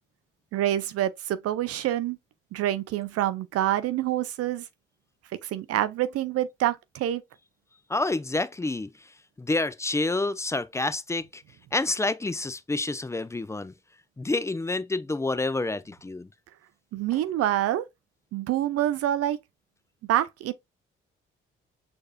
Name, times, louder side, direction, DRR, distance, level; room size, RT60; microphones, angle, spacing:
voice 1, 0.5-2.2 2.5-4.7 5.4-7.2 16.9-17.8 18.3-19.4 20.1-20.5, right 12 dB, 55° right, 0.5 m, -26 dB
voice 2, 7.9-9.1 9.4-11.4 11.7-13.7 14.2-16.3, left 2 dB, 10° left, 0.4 m, -28 dB
6.4 x 2.7 x 2.2 m
hypercardioid pair, 40°, 29 cm